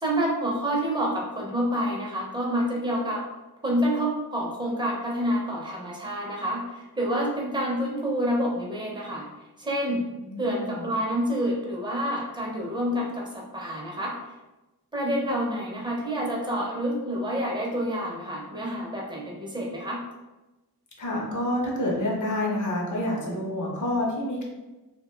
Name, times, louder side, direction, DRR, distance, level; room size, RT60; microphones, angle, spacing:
voice 1, 0.0-3.2 3.6-9.3 9.6-10.0 10.4-14.1 14.9-20.0, equal, 10° right, -3 dB, 0.5 m, -28 dB
voice 2, 10.2-10.8 21.0-24.4, left 1 dB, 50° left, -2 dB, 0.7 m, -28 dB
2.4 x 2.1 x 3.1 m, 1.1 s
wide cardioid pair, 160°, 39 cm